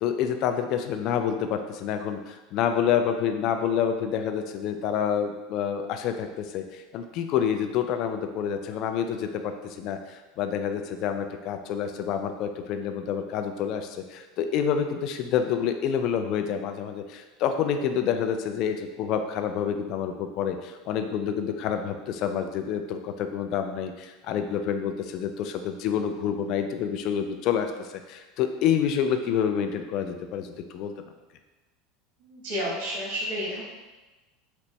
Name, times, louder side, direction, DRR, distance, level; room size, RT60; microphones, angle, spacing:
voice 1, 0.0-30.9, left 8 dB, 55° left, 7 dB, 0.3 m, -28 dB
voice 2, 32.2-33.6, equal, 60° right, -4 dB, 1.1 m, -31 dB
4.2 x 2.1 x 3.0 m, 1.2 s
hypercardioid pair, 100°, 0 cm